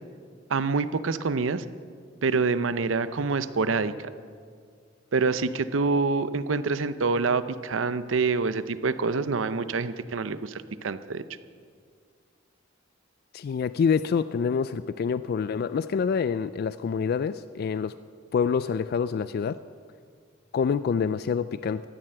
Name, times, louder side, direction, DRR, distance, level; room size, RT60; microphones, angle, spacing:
voice 1, 0.5-1.6 2.2-4.1 5.1-11.2, right 4 dB, 80° right, 13 dB, 0.6 m, -26 dB
voice 2, 13.3-18.0 18.3-19.6 20.5-21.8, left 6 dB, 50° left, 14 dB, 0.3 m, -26 dB
14.0 x 11.0 x 7.7 m, 2.1 s
head